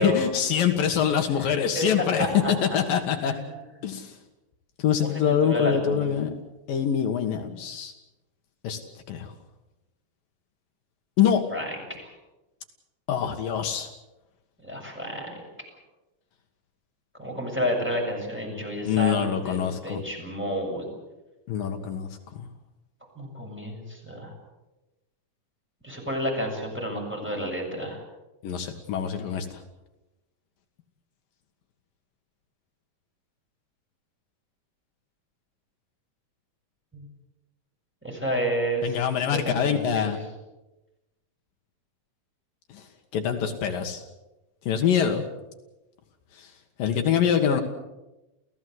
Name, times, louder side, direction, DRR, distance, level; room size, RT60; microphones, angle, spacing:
voice 1, 0.0-3.3 3.8-4.1 4.8-6.3 6.7-7.9 8.6-8.8 9.1-9.3 11.2-11.4 13.1-13.9 18.9-20.0 21.5-22.5 28.4-29.6 38.8-40.2 42.7-42.8 43.1-44.0 44.7-45.2 46.4-46.5 46.8-47.6, left 8 dB, 75° left, 5 dB, 3.3 m, -25 dB
voice 2, 2.2-2.8 3.2-3.5 5.0-6.1 11.5-11.8 14.6-15.4 17.2-20.9 23.2-24.3 25.8-28.0 36.9-37.1 38.0-39.0 39.3-40.1, equal, 5° right, -1 dB, 7.0 m, -30 dB
29.5 x 16.0 x 8.0 m, 1.0 s
omnidirectional pair, 4.1 m